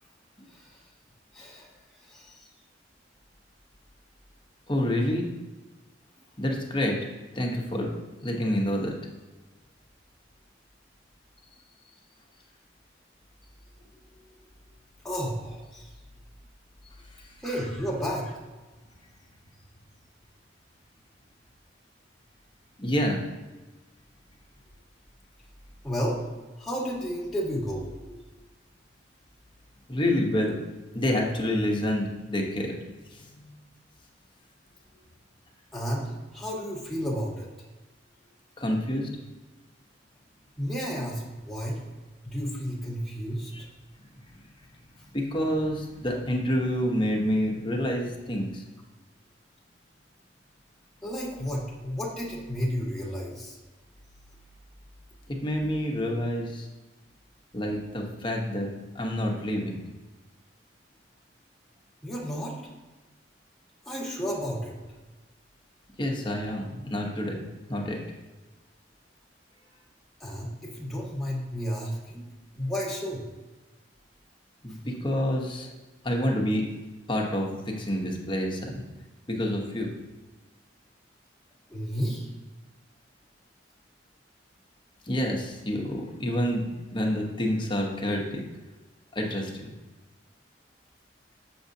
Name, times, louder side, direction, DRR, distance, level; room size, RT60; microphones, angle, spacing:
voice 1, 0.5-0.9 1.3-2.5 15.0-15.9 17.4-18.4 25.8-26.2 26.6-28.2 35.7-37.7 40.6-41.8 42.2-43.7 51.0-53.6 62.0-62.6 63.8-64.7 70.2-72.3 72.6-73.3 74.7-74.8 81.7-82.3, equal, ahead, -4 dB, 1.5 m, -32 dB
voice 2, 4.7-5.3 6.4-7.0 7.3-8.9 17.2-17.3 22.8-23.2 29.9-30.6 30.9-32.7 33.1-33.5 38.6-39.1 45.1-48.6 55.3-56.7 57.5-59.8 66.0-67.4 67.7-68.0 74.6-75.7 76.0-76.7 77.1-78.8 79.3-79.9 85.1-88.4 89.1-89.7, equal, 25° left, 0 dB, 0.9 m, -28 dB
6.9 x 6.1 x 2.7 m, 1.2 s
head